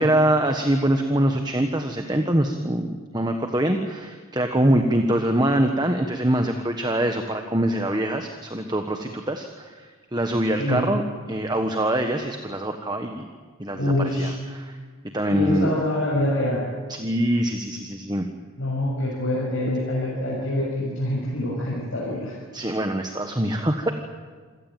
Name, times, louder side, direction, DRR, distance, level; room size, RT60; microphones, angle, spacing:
voice 1, 0.0-11.0 11.3-13.3 13.6-14.8 15.1-15.7 16.9-18.3 22.5-23.9, right 1 dB, 20° right, 5 dB, 1.3 m, -24 dB
voice 2, 13.7-14.3 15.3-16.6 18.6-22.4, left 1 dB, 60° left, -5 dB, 6.7 m, -25 dB
27.5 x 16.5 x 9.2 m, 1.5 s
head